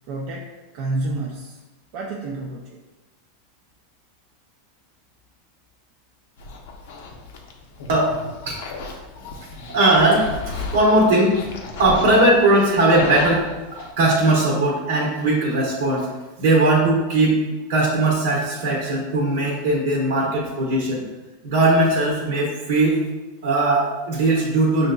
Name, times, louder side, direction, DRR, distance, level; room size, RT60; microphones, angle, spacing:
voice 1, 0.1-0.5 0.7-1.6 1.9-2.8, right 2 dB, 60° right, -1 dB, 0.4 m, -29 dB
sound 1, 6.4-13.9, left 3 dB, 75° left, 0.6 m, -34 dB
voice 2, 7.9-8.2 8.5-8.6 9.4-9.5 9.7-11.4 11.8-13.4 14.0-16.1 16.4-21.0 21.4-23.0 23.4-24.9, right 2 dB, 80° right, -3 dB, 0.9 m, -19 dB
5.8 x 2.7 x 2.2 m, 1.1 s
hypercardioid pair, 115°, 0 cm